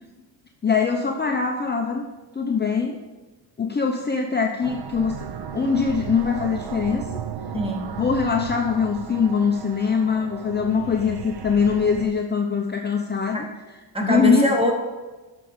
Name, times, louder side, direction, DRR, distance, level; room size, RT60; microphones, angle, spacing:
voice 1, 0.6-2.0 2.3-3.0 3.6-5.3 5.5-7.1 8.0-13.5 14.0-14.5, left 5 dB, 20° left, 2 dB, 0.7 m, -22 dB
sound 1, 4.6-12.1, right 8 dB, 55° right, 0.8 m, -35 dB
voice 2, 7.5-7.9 13.3-13.5 13.9-14.7, equal, 10° right, 2 dB, 1.8 m, -23 dB
12.5 x 5.9 x 5.1 m, 1.2 s
cardioid pair, 105°, 46 cm